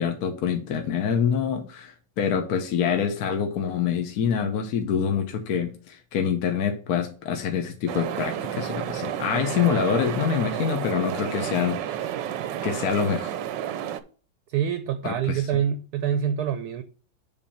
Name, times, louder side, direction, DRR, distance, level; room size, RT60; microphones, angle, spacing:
voice 1, 0.0-12.1 12.6-13.3 15.0-15.4, left 7 dB, 60° left, 1.3 m, -26 dB
sound 1, 7.9-14.0, right 10 dB, 90° right, 1.3 m, -31 dB
voice 2, 14.5-16.8, right 9 dB, 70° right, 1.0 m, -26 dB
7.4 x 3.5 x 5.6 m
omnidirectional pair, 1.9 m